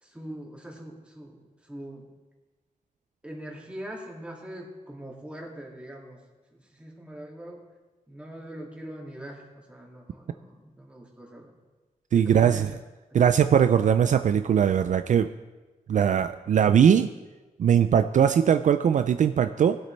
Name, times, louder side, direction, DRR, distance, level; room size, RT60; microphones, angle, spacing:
voice 1, 0.0-2.1 3.2-6.2 6.5-7.6 8.1-11.5 12.1-12.7 13.1-13.3, right 1 dB, 10° right, -2 dB, 2.4 m, -42 dB
voice 2, 12.1-12.7 13.1-15.3 15.9-17.1 17.6-19.8, right 8 dB, 60° right, 9 dB, 0.4 m, -20 dB
20.0 x 8.1 x 3.3 m, 1.2 s
wide cardioid pair, 145°, 15 cm